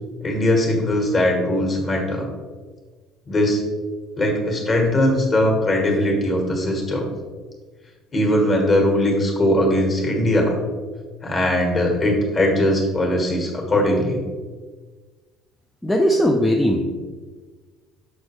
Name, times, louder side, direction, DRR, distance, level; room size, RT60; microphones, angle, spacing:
voice 1, 0.2-2.3 3.3-3.6 4.2-7.1 8.1-10.6 11.2-14.2, left 1 dB, 30° left, 1 dB, 1.6 m, -20 dB
voice 2, 15.8-16.8, equal, 5° left, -1 dB, 0.5 m, -18 dB
6.1 x 6.1 x 3.2 m, 1.4 s
cardioid pair, 140°, 0 cm